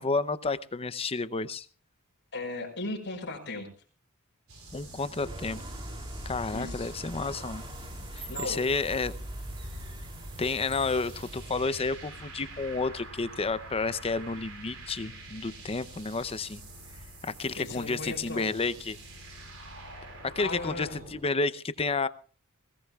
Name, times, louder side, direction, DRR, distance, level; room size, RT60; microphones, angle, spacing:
voice 1, 0.0-1.7 4.7-5.6 6.3-7.6 8.1-9.1 10.4-16.6 17.2-19.0 20.2-22.1, left 3 dB, 25° left, 0.6 m, -31 dB
voice 2, 2.3-3.7 6.5-6.9 8.3-8.6 17.6-18.5 20.4-21.0, left 2 dB, 55° left, 5.4 m, -36 dB
sound 1, 4.5-21.2, right 2 dB, 65° right, 5.4 m, -47 dB
sound 2, 5.2-11.9, right 1 dB, 20° right, 3.1 m, -41 dB
21.0 x 17.0 x 2.4 m
head